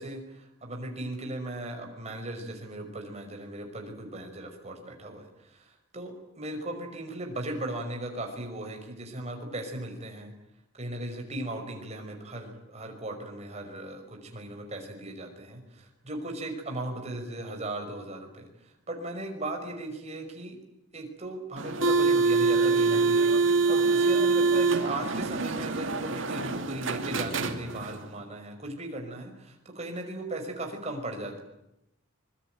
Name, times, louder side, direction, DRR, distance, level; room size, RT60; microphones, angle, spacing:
voice 1, 0.0-10.3 10.7-20.6 20.9-31.4, right 1 dB, 30° right, 3 dB, 5.6 m, -37 dB
sound 1, 21.6-28.0, right 4 dB, 65° right, 2.5 m, -25 dB
26.0 x 22.5 x 9.2 m, 0.86 s
head